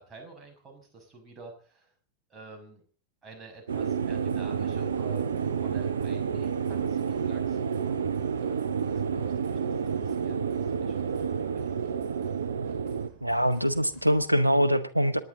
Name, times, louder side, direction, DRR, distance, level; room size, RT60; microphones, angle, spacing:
voice 1, 0.0-1.9 2.3-2.8 3.2-8.0 8.3-12.0, right 3 dB, 20° right, 3 dB, 6.0 m, -49 dB
sound 1, 3.7-13.1, right 6 dB, 65° right, 0.9 m, -29 dB
sound 2, 4.0-14.3, right 4 dB, 40° right, 4.6 m, -55 dB
voice 2, 13.2-15.2, equal, 85° right, 13 dB, 1.1 m, -23 dB
26.5 x 10.0 x 3.8 m, 0.39 s
figure-of-eight pair, 90°, 0 cm